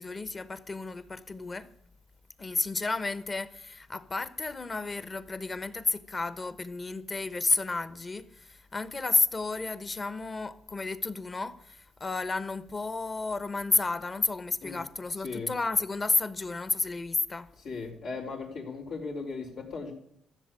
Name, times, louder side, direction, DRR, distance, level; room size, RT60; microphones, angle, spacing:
voice 1, 0.0-1.7 2.4-17.5, left 3 dB, 30° left, 1.1 m, -31 dB
voice 2, 15.1-15.5 17.6-19.9, left 4 dB, 80° left, 4.2 m, -37 dB
14.5 x 7.4 x 9.7 m
cardioid pair, 90°, 0 cm